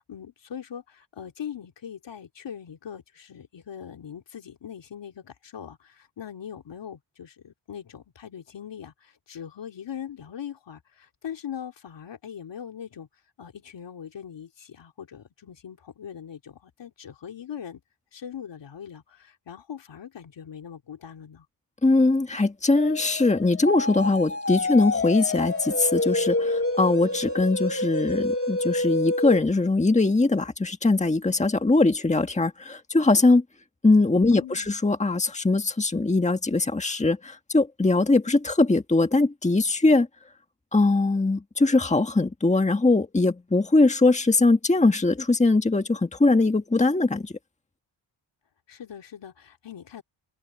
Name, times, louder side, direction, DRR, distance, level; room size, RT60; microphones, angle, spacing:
voice 1, 0.0-13.1 13.4-17.8 18.1-21.5 34.3-34.8 48.7-50.0, left 9 dB, 80° left, 3.2 m, -41 dB
voice 2, 21.8-33.4 33.8-40.1 40.7-47.3, left 2 dB, 15° left, 1.6 m, -21 dB
sound 1, 22.7-29.4, left 2 dB, 30° left, 2.7 m, -28 dB
open air
cardioid pair, 85°, 43 cm